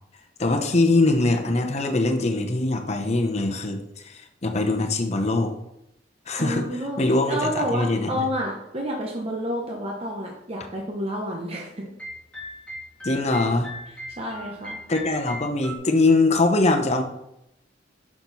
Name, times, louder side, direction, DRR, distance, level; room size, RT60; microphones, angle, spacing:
voice 1, 0.4-5.5 6.3-6.6 7.0-8.2 13.0-13.7 14.9-17.0, left 2 dB, 35° left, 4 dB, 0.9 m, -22 dB
voice 2, 6.4-7.0 7.3-11.9 13.9-14.8, equal, 35° right, -1 dB, 0.9 m, -29 dB
sound 1, 12.0-15.8, equal, 5° left, 1.5 m, -39 dB
6.6 x 6.0 x 4.0 m, 0.83 s
head